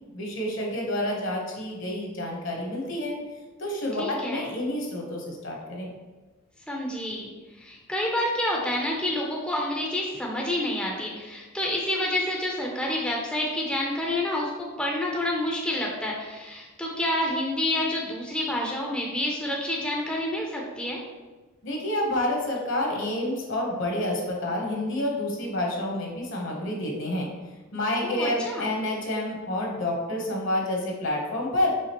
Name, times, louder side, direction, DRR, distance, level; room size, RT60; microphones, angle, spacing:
voice 1, 0.1-3.1 3.6-5.9 21.6-27.3 27.7-31.7, left 1 dB, 65° left, -1 dB, 1.0 m, -29 dB
voice 2, 4.0-4.4 6.7-21.0 28.0-28.7, left 1 dB, 5° left, -2 dB, 0.5 m, -28 dB
4.9 x 3.6 x 3.0 m, 1.2 s
head